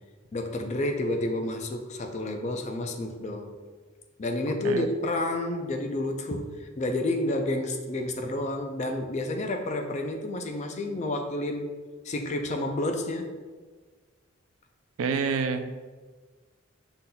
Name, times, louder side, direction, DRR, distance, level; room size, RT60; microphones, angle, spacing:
voice 1, 0.3-3.6 4.2-11.7 12.0-13.4, left 1 dB, 35° left, 4 dB, 0.4 m, -30 dB
voice 2, 15.0-15.7, right 5 dB, 85° right, 9 dB, 0.4 m, -27 dB
5.6 x 3.8 x 2.2 m, 1.4 s
head